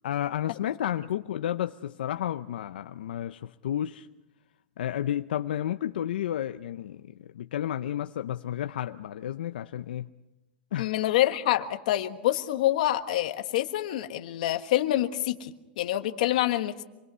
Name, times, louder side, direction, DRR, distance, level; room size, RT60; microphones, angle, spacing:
voice 1, 0.0-4.1 4.8-10.1 10.7-10.9, left 11 dB, 75° left, 9 dB, 0.7 m, -32 dB
voice 2, 10.8-16.8, left 14 dB, 50° left, 7 dB, 1.5 m, -26 dB
27.0 x 21.0 x 5.6 m, 1.1 s
supercardioid pair, 180°, 5 cm